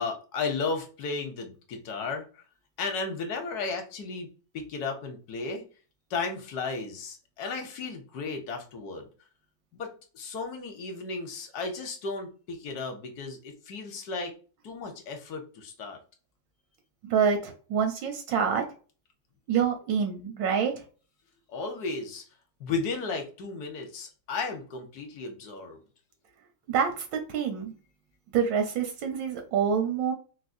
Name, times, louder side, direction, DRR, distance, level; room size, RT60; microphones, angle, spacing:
voice 1, 0.0-2.4 2.8-4.3 4.5-5.6 6.1-9.1 9.7-14.3 14.6-16.0 21.5-22.2 22.6-25.8, left 4 dB, 65° left, 5 dB, 1.2 m, -34 dB
voice 2, 17.0-18.6 19.5-20.8 26.7-27.7 28.3-30.1, right 7 dB, 80° right, 5 dB, 1.3 m, -26 dB
4.3 x 2.0 x 2.5 m, 0.37 s
omnidirectional pair, 2.0 m